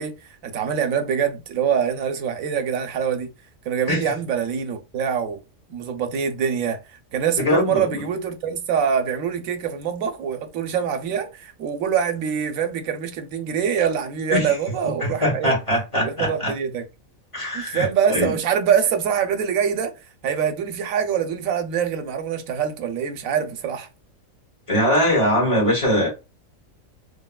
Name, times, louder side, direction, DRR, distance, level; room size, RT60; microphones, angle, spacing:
voice 1, 0.0-3.3 3.6-5.4 5.7-15.5 16.0-16.8 17.5-23.9, right 7 dB, 85° right, 1.0 m, -24 dB
voice 2, 7.4-7.9 14.3-14.6 14.8-16.5 17.3-18.3 24.7-26.1, left 1 dB, 25° left, 1.1 m, -22 dB
3.3 x 2.2 x 2.2 m
omnidirectional pair, 1.4 m